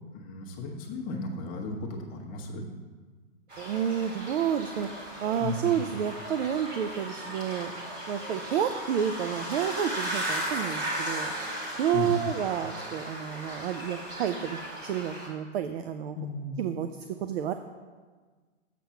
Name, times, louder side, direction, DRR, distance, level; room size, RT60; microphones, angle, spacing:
voice 1, 0.1-2.7 5.4-5.9 11.9-12.1 16.1-16.6, left 2 dB, 20° left, 0 dB, 1.1 m, -35 dB
sound 1, 3.5-15.3, right 1 dB, 25° right, 1.9 m, -36 dB
voice 2, 3.6-7.7 8.1-11.3 11.7-16.2 16.6-16.9 17.2-17.5, right 9 dB, 55° right, 9 dB, 0.5 m, -30 dB
7.5 x 5.7 x 5.6 m, 1.4 s
hypercardioid pair, 145°, 37 cm